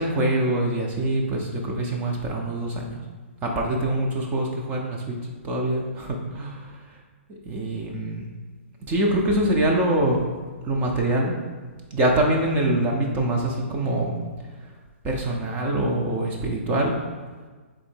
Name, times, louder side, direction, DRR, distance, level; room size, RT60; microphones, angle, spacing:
voice 1, 0.0-3.0 3.4-5.2 5.4-6.6 7.5-8.3 8.9-10.2 10.6-11.4 11.9-14.2 15.0-17.0, right 1 dB, 20° right, 0 dB, 0.5 m, -24 dB
3.7 x 2.7 x 4.4 m, 1.4 s
hypercardioid pair, 145°, 7 cm